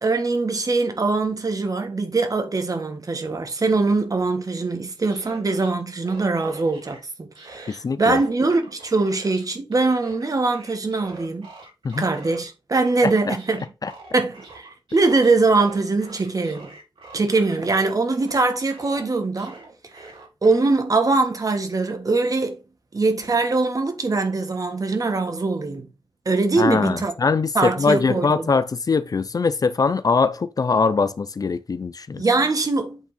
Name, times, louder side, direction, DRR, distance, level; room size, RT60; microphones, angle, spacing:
voice 1, 0.0-11.5 12.0-13.6 14.1-16.7 17.1-19.6 20.0-20.1 20.4-22.6 22.9-25.9 26.2-27.1 27.5-28.5 32.1-33.0, right 3 dB, 40° right, 1.5 m, -22 dB
sound 1, 4.9-5.7 6.0-7.0 7.4-9.4 9.7-12.5 12.8-17.9 18.2-20.6, right 3 dB, 75° right, 3.2 m, -44 dB
voice 2, 7.7-8.2 11.8-12.1 13.0-13.4 13.8-13.9 26.6-32.2, left 4 dB, 45° left, 0.5 m, -22 dB
8.3 x 3.6 x 4.1 m
wide cardioid pair, 85°, 9 cm